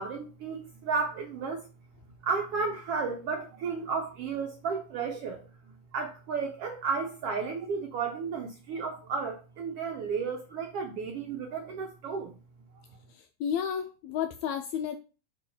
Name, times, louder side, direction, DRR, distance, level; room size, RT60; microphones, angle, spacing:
voice 1, 0.0-1.7 2.2-5.4 5.9-12.4, right 5 dB, 75° right, 3 dB, 1.4 m, -33 dB
voice 2, 13.1-15.0, left 8 dB, 80° left, 6 dB, 1.8 m, -32 dB
8.8 x 3.1 x 4.3 m, 0.33 s
omnidirectional pair, 3.6 m